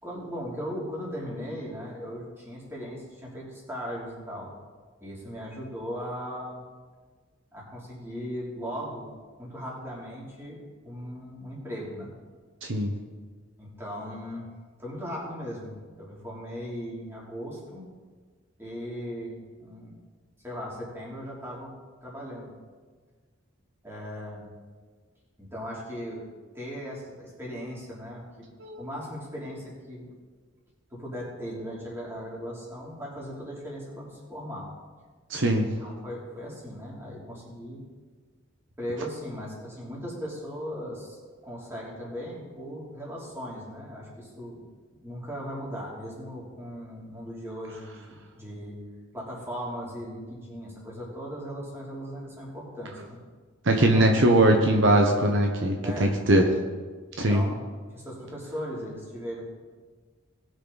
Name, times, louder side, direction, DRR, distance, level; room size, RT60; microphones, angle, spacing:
voice 1, 0.0-4.5 5.0-6.6 7.5-9.1 9.4-12.1 13.6-14.5 14.8-17.8 18.6-20.0 20.4-21.7 22.0-22.5 23.8-24.5 25.4-26.2 26.5-28.2 28.8-30.0 30.9-34.7 35.6-37.8 38.8-44.6 45.0-48.8 49.1-53.2 53.9-54.1 55.8-56.2 57.3-57.6 57.9-59.4, equal, 10° right, -5 dB, 3.1 m, -38 dB
voice 2, 35.3-35.7 53.6-56.4 57.2-57.4, right 1 dB, 65° right, 2 dB, 1.1 m, -21 dB
19.5 x 6.5 x 4.1 m, 1.5 s
head